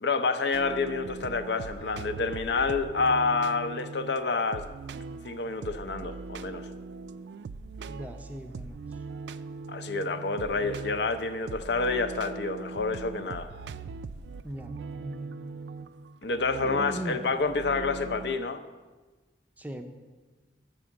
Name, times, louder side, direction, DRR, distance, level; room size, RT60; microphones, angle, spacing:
voice 1, 0.0-4.7 5.2-6.7 9.7-13.5 16.2-18.6, left 4 dB, 75° left, 8 dB, 0.6 m, -28 dB
sound 1, 0.5-18.4, right 4 dB, 75° right, 0.3 m, -41 dB
voice 2, 7.9-9.0 14.4-15.4 16.6-17.2 19.6-19.8, equal, 10° right, 5 dB, 0.5 m, -39 dB
7.2 x 6.2 x 7.0 m, 1.3 s
head